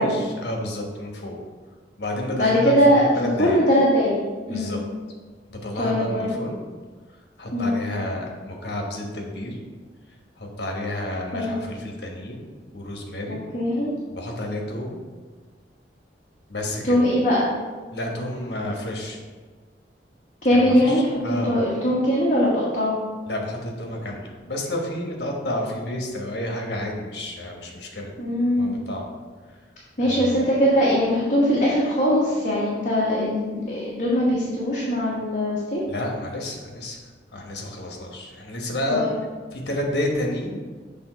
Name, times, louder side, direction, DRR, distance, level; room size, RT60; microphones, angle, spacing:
voice 1, 0.0-1.4 2.0-3.6 4.5-4.8 5.5-6.6 7.4-9.6 10.4-12.4 12.7-13.4 14.1-15.0 16.5-17.0 17.9-19.2 20.5-21.6 23.3-28.1 28.5-29.1 29.5-29.6 30.0-30.5 35.9-37.0 37.3-39.0 39.5-40.6, left 1 dB, 70° left, 0 dB, 1.2 m, -30 dB
voice 2, 2.3-4.2 4.5-4.8 5.8-6.4 7.5-7.7 11.3-11.6 13.3-13.9 16.8-17.5 20.4-21.0 21.3-23.0 28.2-28.8 30.0-35.8 38.9-39.1, equal, 45° left, -6 dB, 1.1 m, -21 dB
6.9 x 3.6 x 5.0 m, 1.4 s
head